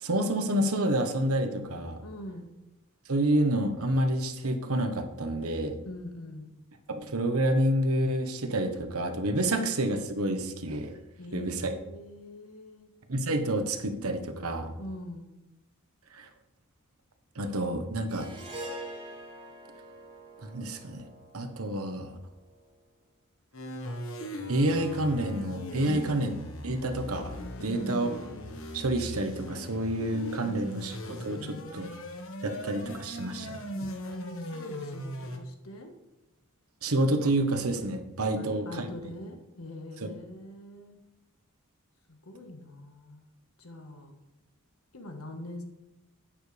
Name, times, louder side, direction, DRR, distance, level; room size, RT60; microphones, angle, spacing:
voice 1, 0.0-2.0 3.1-5.8 6.9-11.0 11.3-11.5 13.1-14.7 16.1-16.3 17.3-18.3 20.4-21.0 21.3-22.1 24.5-26.3 26.6-28.1 28.7-31.9 32.4-33.6 36.8-38.9, right 1 dB, 90° right, 6 dB, 1.2 m, -28 dB
voice 2, 2.0-2.5 5.8-6.5 11.2-12.9 14.8-15.3 25.8-26.2 27.6-28.2 30.4-30.8 33.7-35.9 38.3-41.0 42.1-43.2 43.6-44.2 44.9-45.6, left 1 dB, 80° left, 5 dB, 1.5 m, -43 dB
Harp, 18.1-22.5, right 1 dB, 25° right, 1.9 m, -44 dB
sound 1, 23.5-35.4, equal, 65° left, 1.4 m, -39 dB
11.0 x 9.2 x 3.4 m, 0.97 s
head